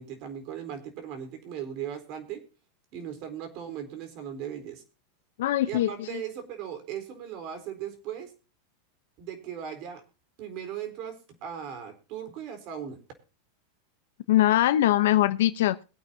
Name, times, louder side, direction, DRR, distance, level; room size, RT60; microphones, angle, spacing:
voice 1, 0.0-2.4 2.9-4.8 5.6-8.3 9.2-10.0 10.4-13.0, right 9 dB, 45° right, 8 dB, 4.1 m, -38 dB
voice 2, 5.4-6.2 14.3-15.8, left 14 dB, 75° left, 11 dB, 0.8 m, -22 dB
21.5 x 8.8 x 2.8 m, 0.33 s
supercardioid pair, 140°, 0 cm